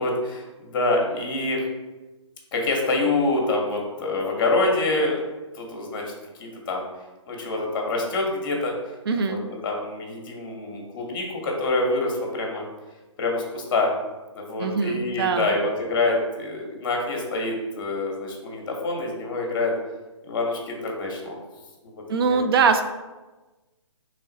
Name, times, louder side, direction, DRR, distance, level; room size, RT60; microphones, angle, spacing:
voice 1, 0.0-1.6 2.5-5.2 5.5-6.1 6.4-6.9 7.3-8.7 9.3-12.7 13.2-13.9 14.3-19.7 20.2-21.4 21.8-22.4, left 2 dB, 45° left, 0 dB, 0.9 m, -26 dB
voice 2, 9.1-9.4 14.6-15.5 22.1-22.8, right 5 dB, 50° right, 7 dB, 0.4 m, -22 dB
3.2 x 2.4 x 3.8 m, 1.2 s
hypercardioid pair, 150°, 16 cm